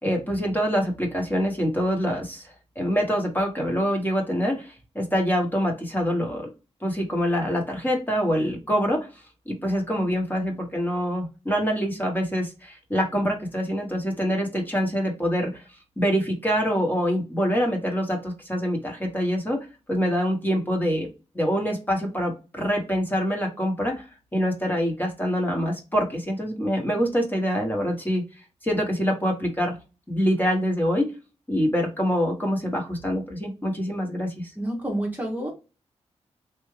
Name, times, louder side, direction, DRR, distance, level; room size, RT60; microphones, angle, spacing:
voice 1, 0.0-6.5 6.8-9.1 9.5-15.6 16.0-21.1 21.3-24.1 24.3-28.2 28.6-29.7 30.1-31.1 31.5-34.3, equal, 15° left, 1 dB, 1.3 m, -25 dB
voice 2, 34.6-35.5, right 1 dB, 15° right, -1 dB, 1.0 m, -28 dB
3.5 x 2.5 x 3.2 m, 0.30 s
wide cardioid pair, 85°, 12 cm